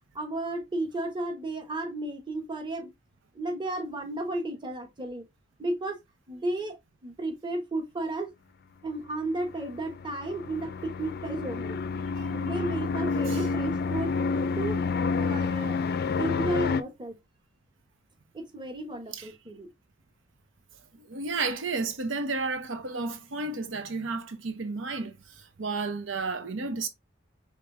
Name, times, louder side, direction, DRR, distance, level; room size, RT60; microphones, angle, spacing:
voice 1, 0.1-2.9 3.3-5.3 5.6-6.0 6.3-6.8 7.0-8.3 8.8-11.8 12.3-14.8 15.1-15.8 16.2-17.2 18.3-19.7, right 1 dB, 25° right, 1.2 m, -33 dB
sound 1, 9.5-16.8, left 4 dB, 55° left, 0.4 m, -29 dB
voice 2, 21.0-26.9, right 3 dB, 80° right, 0.8 m, -32 dB
5.2 x 3.6 x 2.6 m
head